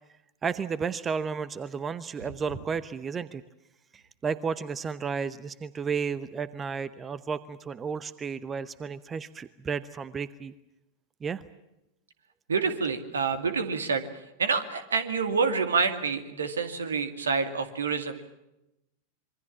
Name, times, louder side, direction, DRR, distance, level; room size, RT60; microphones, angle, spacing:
voice 1, 0.1-3.4 3.9-10.5 11.2-11.4, right 6 dB, 20° right, 17 dB, 0.9 m, -33 dB
voice 2, 12.5-14.1 14.4-18.2, right 5 dB, 70° right, 10 dB, 2.3 m, -27 dB
26.5 x 23.5 x 7.3 m, 0.90 s
figure-of-eight pair, 90°, 0 cm